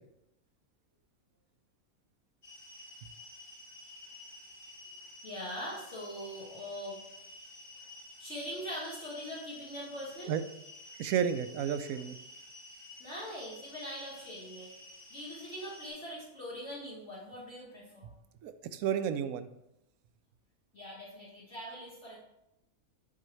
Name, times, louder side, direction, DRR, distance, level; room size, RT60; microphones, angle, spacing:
sound 1, 2.4-15.9, left 2 dB, 85° left, 2.7 m, -51 dB
voice 1, 5.2-7.0 8.2-10.3 13.0-14.7 15.1-18.1 20.7-22.2, equal, 50° left, -7 dB, 1.9 m, -42 dB
voice 2, 11.0-12.2 18.4-19.5, right 8 dB, 75° right, 10 dB, 1.0 m, -32 dB
11.0 x 4.8 x 3.2 m, 0.86 s
omnidirectional pair, 1.6 m